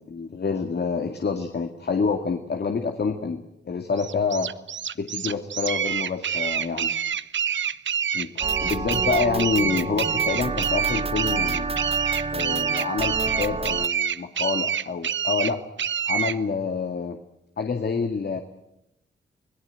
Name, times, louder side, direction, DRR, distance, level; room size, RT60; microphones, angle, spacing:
voice 1, 0.0-4.5 5.0-6.9 8.1-11.8 12.3-15.6 16.1-17.2 17.6-18.4, left 5 dB, 55° left, 6 dB, 2.1 m, -27 dB
sound 1, 4.0-16.4, right 8 dB, 70° right, 0.8 m, -27 dB
sound 2, 8.4-13.9, right 3 dB, 30° right, 0.9 m, -29 dB
26.0 x 17.5 x 9.2 m, 0.85 s
cardioid pair, 60°, 20 cm